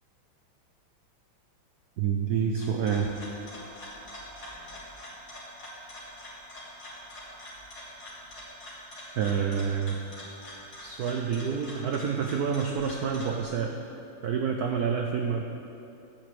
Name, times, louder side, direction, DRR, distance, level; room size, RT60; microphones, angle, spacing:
voice 1, 2.0-3.1 9.2-10.0 10.8-13.7 14.2-15.4, right 7 dB, 75° right, 2 dB, 0.9 m, -28 dB
sound 1, 2.3-13.4, left 1 dB, 45° left, 2.9 m, -44 dB
11.5 x 4.9 x 7.5 m, 2.7 s
omnidirectional pair, 2.3 m